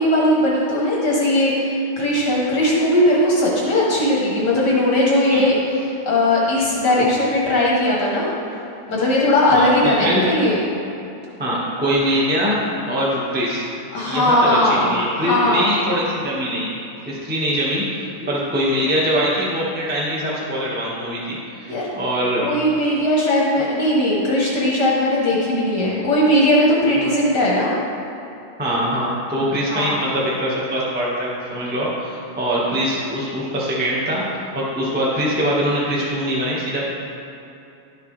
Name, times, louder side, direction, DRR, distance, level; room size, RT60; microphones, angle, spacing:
voice 1, 0.0-8.3 8.9-10.6 13.9-14.8 15.2-15.7 18.2-18.3 21.7-21.9 22.4-27.7 29.7-30.0, left 1 dB, 55° left, -5 dB, 1.2 m, -18 dB
voice 2, 9.5-10.2 11.4-12.6 12.9-13.7 14.0-16.7 17.1-22.5 27.0-27.1 28.6-36.8, equal, 15° right, -7 dB, 0.3 m, -23 dB
12.0 x 6.7 x 3.4 m, 2.8 s
omnidirectional pair, 3.4 m